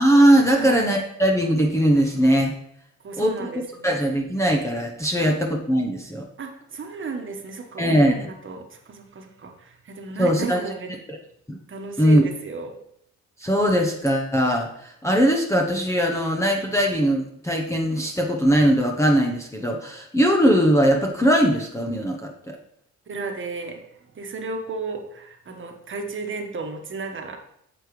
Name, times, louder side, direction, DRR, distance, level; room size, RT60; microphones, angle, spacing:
voice 1, 0.0-2.5 3.2-3.3 3.8-6.3 7.8-8.1 10.2-10.6 11.1-11.2 11.5-11.6 12.0-12.2 13.4-22.6, equal, 10° left, 1 dB, 1.0 m, -20 dB
voice 2, 3.0-3.9 5.2-5.3 6.4-10.9 11.7-12.7 23.1-23.8 24.1-27.4, right 4 dB, 40° right, 4 dB, 1.4 m, -34 dB
8.5 x 6.7 x 3.2 m, 0.72 s
cardioid pair, 90°, 30 cm